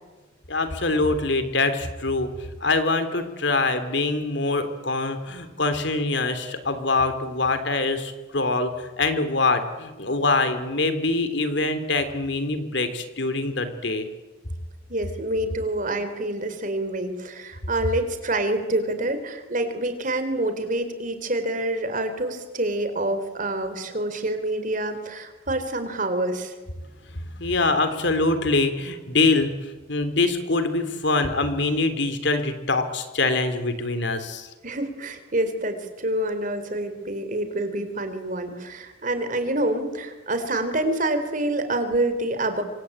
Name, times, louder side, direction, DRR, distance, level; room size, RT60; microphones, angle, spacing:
voice 1, 0.5-2.3 2.6-14.1 27.3-29.5 29.9-34.5, left 3 dB, 60° left, 10 dB, 3.0 m, -24 dB
voice 2, 14.9-26.5 34.6-42.6, right 1 dB, 40° right, 8 dB, 3.9 m, -27 dB
26.0 x 25.5 x 8.8 m, 1.2 s
head